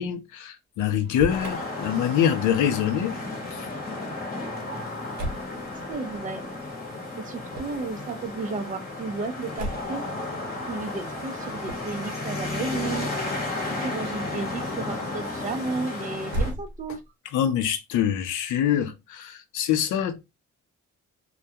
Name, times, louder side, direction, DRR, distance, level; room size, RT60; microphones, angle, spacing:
voice 1, 0.0-3.2 3.5-3.7 17.3-20.2, left 10 dB, 80° left, 0.6 m, -25 dB
Motor vehicle (road), 1.0-1.6 5.1-5.5 7.5-7.9 9.6-10.0 11.6-12.0 16.2-17.1, right 1 dB, 70° right, 0.8 m, -32 dB
sound 1, 1.3-16.5, left 2 dB, 30° left, 0.9 m, -33 dB
voice 2, 5.9-6.4 7.2-10.1 10.7-13.1 13.8-17.0, right 3 dB, 25° right, 0.5 m, -33 dB
2.3 x 2.1 x 2.7 m
cardioid pair, 90°, 30 cm